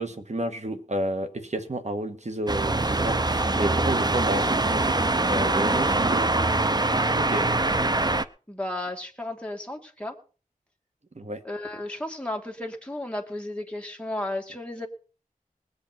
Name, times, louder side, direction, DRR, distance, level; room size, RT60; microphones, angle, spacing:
voice 1, 0.0-6.5 7.1-7.5 11.1-11.4, right 1 dB, 50° right, 8 dB, 1.6 m, -31 dB
sound 1, 2.5-8.2, right 2 dB, 30° right, 0.6 m, -23 dB
voice 2, 8.5-10.2 11.4-14.9, left 1 dB, 10° left, 1 dB, 2.4 m, -33 dB
20.5 x 8.3 x 4.4 m, 0.37 s
wide cardioid pair, 65°, 15 cm